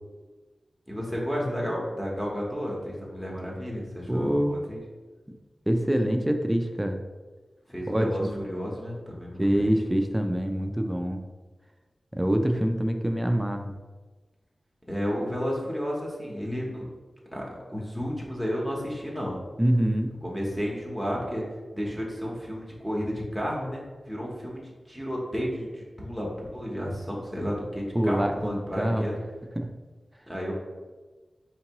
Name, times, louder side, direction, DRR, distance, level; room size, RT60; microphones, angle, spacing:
voice 1, 0.9-4.8 7.7-9.8 14.9-16.9 17.3-17.4 17.7-19.4 20.2-21.4 21.7-29.2 30.3-30.5, equal, 5° left, -3 dB, 0.9 m, -32 dB
voice 2, 4.1-4.5 5.7-7.0 7.9-8.4 9.4-11.2 12.1-13.7 19.6-20.1 27.9-29.1 29.6-29.7, equal, 10° right, 4 dB, 0.3 m, -25 dB
4.4 x 2.8 x 2.9 m, 1.3 s
wide cardioid pair, 90°, 0 cm